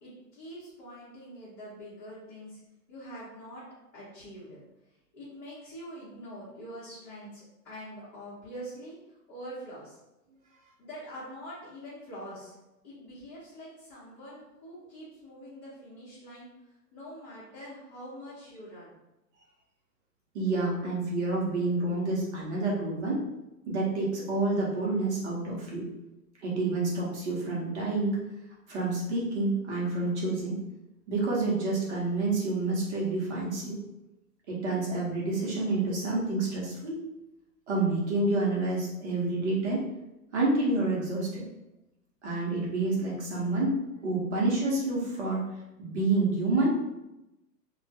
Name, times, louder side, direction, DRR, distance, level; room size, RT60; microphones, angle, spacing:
voice 1, 0.0-2.6 2.9-3.6 3.9-4.6 5.1-10.0 10.8-12.5 12.8-19.0, equal, 30° left, -11 dB, 0.9 m, -45 dB
voice 2, 20.3-23.2 23.7-25.9 26.4-28.2 28.7-30.6 31.1-33.8 34.5-37.0 37.7-39.9 40.3-41.5 42.2-46.7, right 2 dB, 45° right, -4 dB, 0.8 m, -28 dB
2.3 x 2.2 x 2.6 m, 0.95 s
hypercardioid pair, 150°, 49 cm